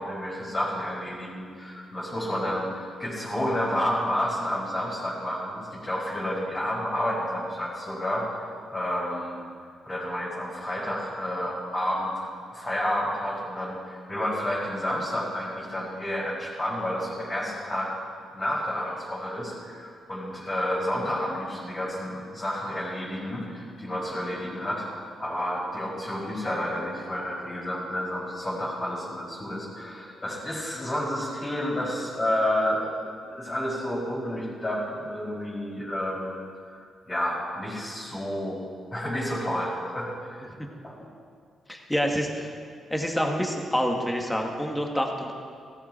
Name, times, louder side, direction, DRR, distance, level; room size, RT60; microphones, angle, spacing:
voice 1, 0.0-8.3 8.7-9.4 9.8-17.9 18.3-38.6 38.9-40.5 40.8-41.1, equal, 25° left, -6 dB, 4.9 m, -30 dB
voice 2, 41.7-42.5 42.9-45.4, equal, 5° left, 1 dB, 2.0 m, -27 dB
17.0 x 14.5 x 4.6 m, 2.1 s
cardioid pair, 105°, 0 cm